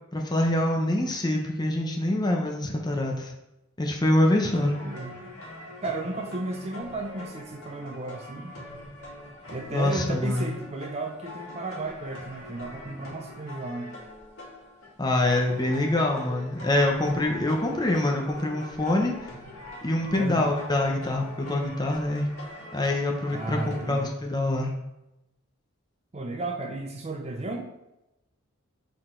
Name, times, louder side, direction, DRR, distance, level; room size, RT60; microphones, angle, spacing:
voice 1, 0.1-3.3 3.8-4.7 9.7-10.5 15.0-19.1 19.8-22.3 22.7-24.7, left 1 dB, 20° left, 1 dB, 0.8 m, -25 dB
sound 1, 4.5-24.1, left 1 dB, 75° left, 1.8 m, -43 dB
voice 2, 4.8-5.1 5.8-8.6 9.5-13.9 20.1-20.5 23.3-24.1 26.1-27.7, right 2 dB, 30° right, 3 dB, 0.5 m, -34 dB
6.7 x 4.0 x 3.8 m, 0.90 s
head